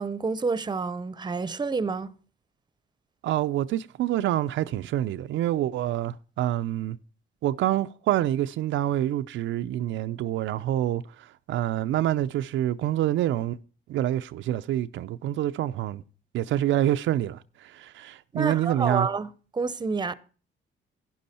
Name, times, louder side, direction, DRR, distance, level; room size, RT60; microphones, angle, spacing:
voice 1, 0.0-2.1 18.3-20.1, right 4 dB, 20° right, 0.7 m, -29 dB
voice 2, 3.2-7.0 7.4-13.6 13.9-16.0 16.3-19.1, right 13 dB, 75° right, 0.5 m, -27 dB
12.0 x 9.9 x 4.2 m
cardioid pair, 90°, 20 cm